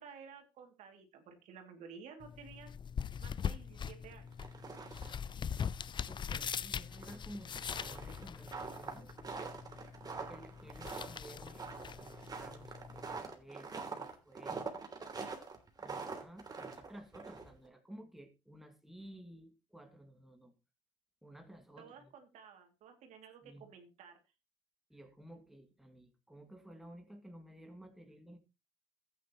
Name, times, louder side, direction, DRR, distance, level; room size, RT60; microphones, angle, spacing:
voice 1, 0.0-2.7 3.2-4.3 21.8-24.2, right 6 dB, 65° right, 5 dB, 2.5 m, -53 dB
sound 1, 2.2-13.2, left 7 dB, 35° left, 0.6 m, -42 dB
sound 2, 4.3-5.3 5.6-5.7 6.1-6.2 6.9-17.7, right 4 dB, 30° right, 2.9 m, -44 dB
voice 2, 6.1-9.2 10.3-14.7 15.8-20.5 21.2-22.1 23.4-23.7 24.9-28.4, right 1 dB, ahead, 4 dB, 2.2 m, -54 dB
14.0 x 9.3 x 3.0 m, 0.26 s
supercardioid pair, 70°, 13 cm